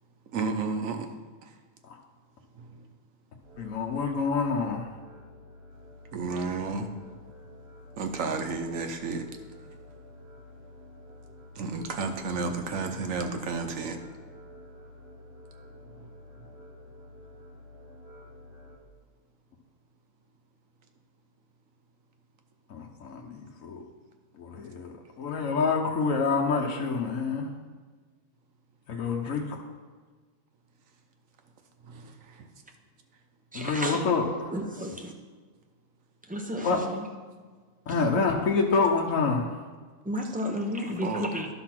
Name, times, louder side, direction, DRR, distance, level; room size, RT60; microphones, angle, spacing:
voice 1, 0.3-1.1 1.4-1.5 2.5-2.9 6.1-6.9 8.0-9.2 11.5-14.0 15.9-16.1 31.8-32.5 41.0-41.3, right 4 dB, 80° right, 5 dB, 1.3 m, -32 dB
sound 1, 3.4-18.8, left 1 dB, 50° right, 2.2 m, -50 dB
voice 2, 3.6-4.9 22.7-23.8 24.3-27.5 28.9-29.6 33.5-34.3 36.6-36.8 37.9-39.5, left 4 dB, 75° left, 0 dB, 1.3 m, -27 dB
voice 3, 33.5-34.0 34.5-35.1 36.3-37.1 40.0-41.5, equal, 10° right, 2 dB, 0.7 m, -32 dB
11.0 x 4.1 x 5.9 m, 1.5 s
omnidirectional pair, 1.4 m